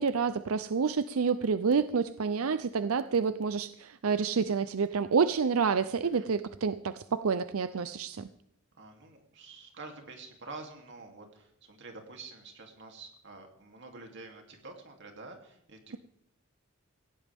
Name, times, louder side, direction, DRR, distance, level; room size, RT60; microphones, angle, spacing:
voice 1, 0.0-8.3, right 5 dB, 90° right, 13 dB, 0.6 m, -28 dB
voice 2, 8.7-16.0, right 3 dB, 60° right, 3 dB, 3.0 m, -48 dB
18.0 x 16.0 x 3.6 m, 0.78 s
head